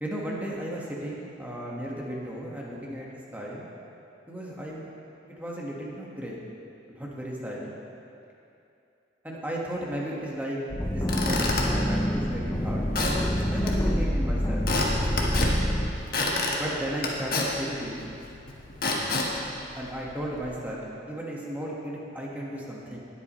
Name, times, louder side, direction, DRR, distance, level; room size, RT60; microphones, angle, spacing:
voice 1, 0.0-3.1 3.3-3.7 4.3-4.9 5.4-6.4 6.9-7.8 9.2-10.6 10.9-12.8 13.5-14.7 15.4-15.6 16.5-18.1 19.7-23.0, right 1 dB, 10° right, -4 dB, 1.5 m, -35 dB
sound 1, 10.7-15.9, equal, 15° left, 0.6 m, -26 dB
Squeak / Wood, 10.8-20.4, left 2 dB, 55° left, 1.4 m, -31 dB
19.5 x 8.5 x 3.2 m, 2.7 s
head